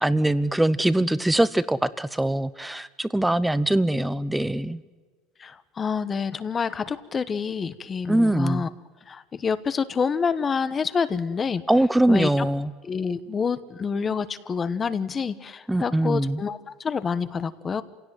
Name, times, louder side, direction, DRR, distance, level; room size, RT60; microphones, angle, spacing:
voice 1, 0.0-4.8 8.1-8.6 11.7-12.7 15.7-16.4, right 1 dB, 5° right, 16 dB, 0.8 m, -22 dB
voice 2, 5.4-8.7 9.1-11.6 12.1-12.5 12.9-17.8, left 6 dB, 25° left, 14 dB, 1.1 m, -27 dB
28.0 x 17.0 x 9.3 m, 1.5 s
cardioid pair, 135°, 0 cm